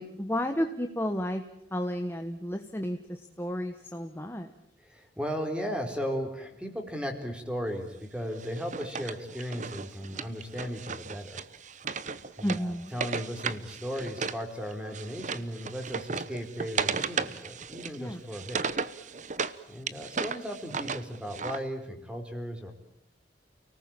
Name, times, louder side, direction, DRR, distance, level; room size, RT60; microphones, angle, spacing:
voice 1, 0.0-1.4 1.7-4.5 12.4-12.9 18.0-18.2, equal, 15° left, 5 dB, 1.3 m, -32 dB
voice 2, 4.9-11.4 12.4-18.6 19.7-22.7, equal, 5° right, 4 dB, 4.0 m, -36 dB
Wood, 8.4-14.4 14.7-19.6 19.9-21.6, right 5 dB, 45° right, 1.0 m, -35 dB
30.0 x 19.0 x 8.9 m, 0.76 s
head